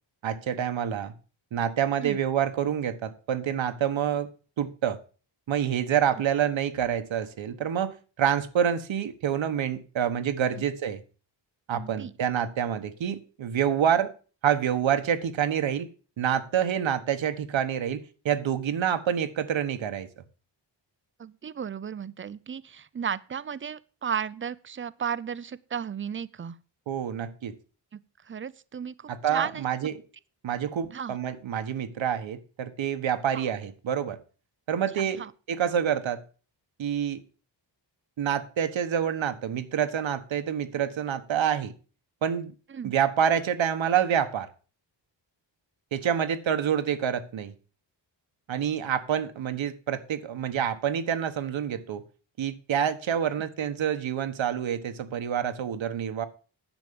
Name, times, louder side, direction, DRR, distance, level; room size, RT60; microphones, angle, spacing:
voice 1, 0.2-1.1 1.5-4.3 4.6-5.0 5.5-11.0 11.7-14.1 14.4-15.9 16.2-20.1 26.9-27.5 29.1-29.9 30.4-34.2 34.7-36.2 36.8-37.2 38.2-41.7 42.2-42.5 42.8-44.5 45.9-47.5 48.5-52.0 52.4-56.3, right 9 dB, 80° right, 1.4 m, -27 dB
voice 2, 11.7-12.1 21.2-26.6 27.9-28.0 28.2-29.6 30.9-31.2 33.3-33.4 35.0-35.3 42.7-42.9, right 7 dB, 30° right, 0.5 m, -34 dB
10.5 x 7.2 x 6.9 m
wide cardioid pair, 165°, 46 cm